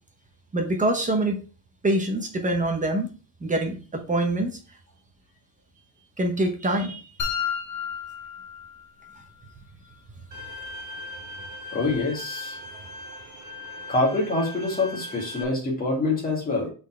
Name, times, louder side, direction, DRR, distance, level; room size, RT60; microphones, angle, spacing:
voice 1, 0.5-1.4 1.8-3.1 3.4-4.5 6.2-7.0 9.6-9.7, right 1 dB, 15° right, 4 dB, 0.8 m, -25 dB
sound 1, 7.2-9.2, left 7 dB, 40° left, 1.5 m, -31 dB
Bowed string instrument, 10.3-15.4, left 2 dB, 40° right, 1.2 m, -39 dB
voice 2, 11.7-12.6 13.9-16.7, left 2 dB, 20° left, -3 dB, 2.0 m, -25 dB
5.3 x 4.2 x 4.3 m, 0.36 s
cardioid pair, 175°, 46 cm